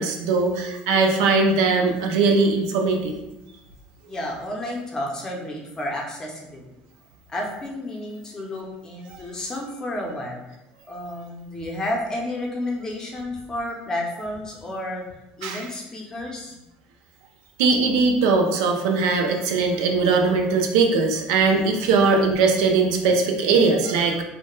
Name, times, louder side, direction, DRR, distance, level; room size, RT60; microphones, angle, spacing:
voice 1, 0.0-3.1 15.4-15.6 17.6-24.2, right 4 dB, 90° right, 2 dB, 0.4 m, -20 dB
voice 2, 4.1-6.7 7.3-10.4 10.9-15.0 15.4-16.6, left 1 dB, 20° left, -1 dB, 0.6 m, -31 dB
2.2 x 2.1 x 3.0 m, 0.95 s
cardioid pair, 130°, 3 cm